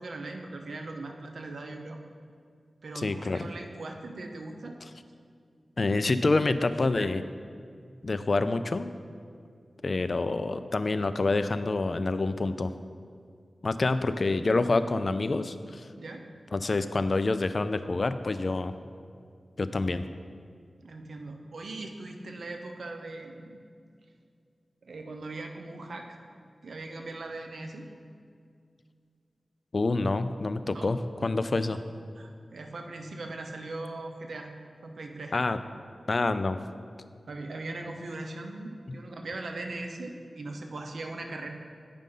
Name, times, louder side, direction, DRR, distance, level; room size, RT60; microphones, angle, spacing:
voice 1, 0.0-2.0 2.8-4.8 16.0-16.3 20.8-23.6 24.8-26.2 26.6-27.9 30.7-30.9 31.7-31.8 32.1-34.5 34.8-35.3 37.3-41.5, right 2 dB, 80° right, 4 dB, 0.7 m, -39 dB
voice 2, 3.0-3.5 5.8-7.2 8.0-8.9 9.8-12.7 13.6-15.9 16.5-18.7 19.6-20.0 29.7-31.8 35.3-35.6 36.1-36.6, left 3 dB, 50° left, 11 dB, 0.3 m, -27 dB
9.2 x 5.2 x 3.8 m, 2.2 s
wide cardioid pair, 70°, 0 cm